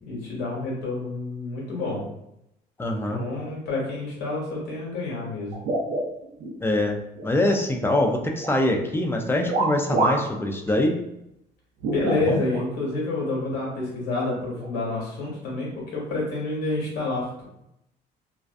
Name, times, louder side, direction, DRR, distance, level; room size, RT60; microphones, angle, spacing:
voice 1, 0.1-2.0 3.1-5.5 11.9-17.4, left 2 dB, 80° left, -4 dB, 1.3 m, -28 dB
voice 2, 2.8-3.3 6.6-11.0 12.2-12.4, left 1 dB, 15° left, 3 dB, 0.4 m, -24 dB
sound 1, 5.5-6.6 7.0-8.1 8.4-8.7 9.5-10.3 10.7-10.8 11.8-12.7 13.5-13.6 14.5-14.7, right 2 dB, 75° right, 0.5 m, -27 dB
2.4 x 2.2 x 2.4 m, 0.81 s
cardioid pair, 110°, 17 cm